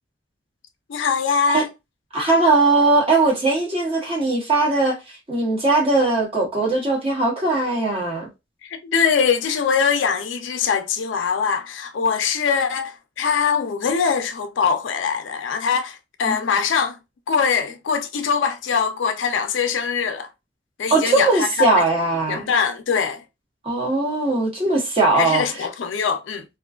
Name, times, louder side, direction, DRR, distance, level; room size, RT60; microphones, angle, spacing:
voice 1, 0.9-1.7 8.6-17.0 17.3-20.3 20.8-21.8 22.3-23.2 25.1-26.5, left 6 dB, 75° left, 0.4 m, -22 dB
voice 2, 2.1-5.0 5.3-8.3 16.3-16.4 20.9-22.5 23.6-25.7, right 2 dB, 30° right, 0.9 m, -19 dB
2.4 x 2.2 x 2.3 m
head